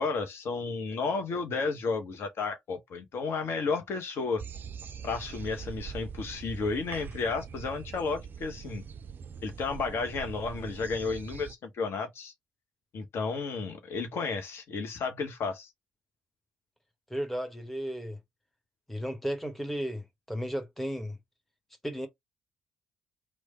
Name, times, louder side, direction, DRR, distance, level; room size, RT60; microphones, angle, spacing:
voice 1, 0.0-4.4 5.0-8.8 9.4-12.3 12.9-15.7, left 4 dB, 50° left, 0.7 m, -32 dB
sound 1, 4.4-11.5, right 7 dB, 40° right, 0.3 m, -43 dB
voice 2, 17.1-18.2 18.9-21.2 21.8-22.1, equal, 5° left, 1.0 m, -34 dB
3.1 x 2.1 x 3.9 m
figure-of-eight pair, 45°, 5 cm